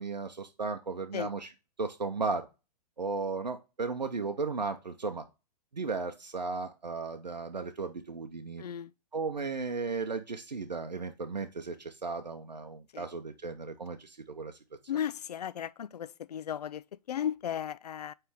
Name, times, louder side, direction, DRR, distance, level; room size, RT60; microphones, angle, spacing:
voice 1, 0.0-1.5 1.8-2.5 3.0-5.2 5.7-8.6 9.1-14.6, right 4 dB, 85° right, 0.7 m, -35 dB
voice 2, 8.6-8.9 12.9-13.1 14.9-18.1, left 9 dB, 70° left, 0.4 m, -35 dB
9.0 x 3.3 x 3.5 m
figure-of-eight pair, 110°, 21 cm